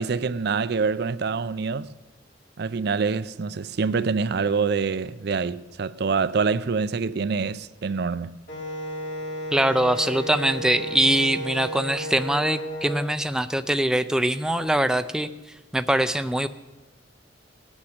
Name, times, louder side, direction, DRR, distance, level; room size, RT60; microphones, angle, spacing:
voice 1, 0.0-1.9 2.6-8.4, right 5 dB, 55° right, 0.5 m, -26 dB
Wind instrument woodwind instrument, 8.5-13.1, equal, 70° left, 3.7 m, -33 dB
voice 2, 9.5-15.3 15.7-16.5, right 1 dB, 5° right, 0.4 m, -23 dB
18.5 x 8.8 x 7.9 m
head